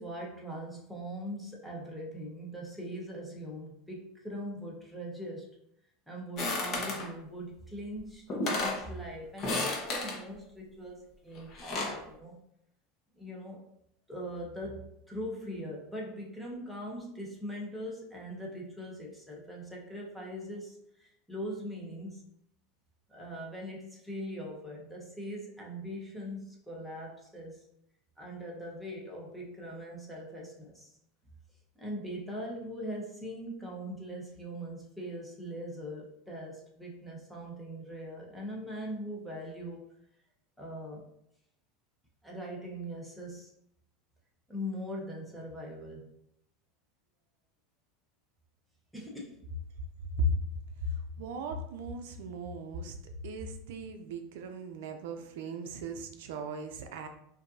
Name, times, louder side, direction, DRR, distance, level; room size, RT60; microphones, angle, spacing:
voice 1, 0.0-5.5 6.1-12.4 13.1-13.7 14.1-22.2 23.1-27.7 28.2-30.9 31.8-39.9 40.6-41.1 42.2-43.5 44.5-46.1 48.9-49.4, equal, ahead, -3 dB, 1.0 m, -41 dB
sound 1, 6.4-7.1 8.0-8.1 8.3-8.8 9.4-10.2 11.4-12.0, left 2 dB, 40° left, 1.1 m, -32 dB
voice 2, 50.9-52.9 53.2-57.1, equal, 75° right, 6 dB, 0.5 m, -36 dB
5.0 x 2.7 x 2.6 m, 0.75 s
supercardioid pair, 135°, 0 cm